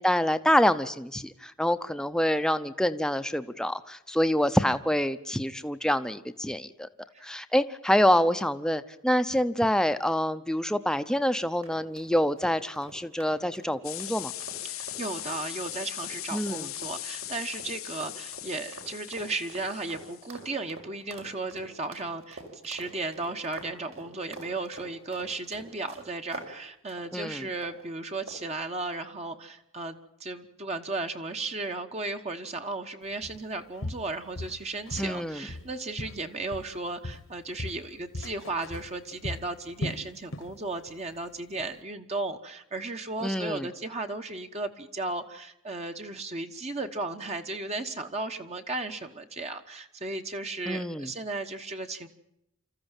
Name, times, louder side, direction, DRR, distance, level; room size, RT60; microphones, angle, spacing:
voice 1, 0.0-6.9 7.2-14.3 16.3-16.7 27.1-27.5 35.0-35.5 43.2-43.7 50.7-51.1, equal, 5° left, 10 dB, 0.7 m, -26 dB
sound 1, 11.6-26.5 26.9-27.1 27.6-27.8 28.3-28.6, right 2 dB, 80° right, 5.4 m, -46 dB
sound 2, 13.8-20.5, left 15 dB, 80° left, 1.1 m, -39 dB
voice 2, 14.6-52.1, right 3 dB, 30° right, 5 dB, 1.2 m, -35 dB
Walk footsteps, 33.2-33.4 33.8-35.2 35.5-36.8 37.0-40.6 40.9-41.1 41.6-41.7, left 1 dB, 65° left, 1.4 m, -38 dB
26.5 x 14.5 x 9.0 m, 0.81 s
head